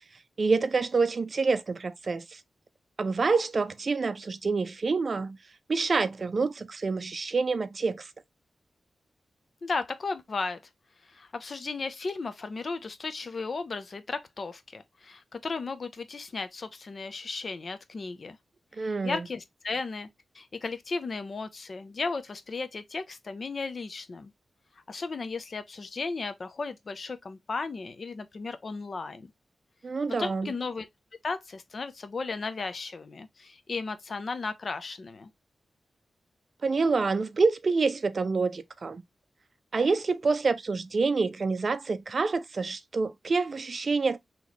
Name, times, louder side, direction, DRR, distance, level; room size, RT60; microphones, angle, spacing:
voice 1, 0.4-2.4 3.0-5.4 5.7-8.1 18.8-19.2 29.8-30.5 36.6-39.0 39.7-44.2, right 4 dB, 50° right, 0.5 m, -27 dB
voice 2, 9.6-10.6 11.0-18.4 18.8-20.1 20.3-24.3 24.9-29.3 30.2-30.9 31.2-35.3, left 4 dB, 50° left, 0.6 m, -35 dB
4.0 x 3.0 x 3.1 m
wide cardioid pair, 95°, 0 cm